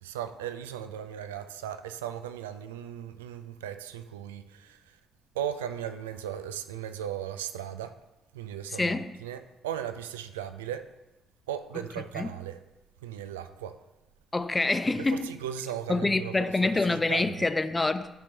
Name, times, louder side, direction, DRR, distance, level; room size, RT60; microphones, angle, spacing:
voice 1, 0.0-5.0 5.3-8.0 8.3-10.9 11.5-12.6 13.0-13.8 15.0-17.4, right 10 dB, 75° right, 0.3 m, -37 dB
voice 2, 8.7-9.1 12.1-12.3 14.3-15.3 15.9-18.1, left 2 dB, 20° left, 0.5 m, -26 dB
10.5 x 4.6 x 2.8 m
figure-of-eight pair, 40°, 0 cm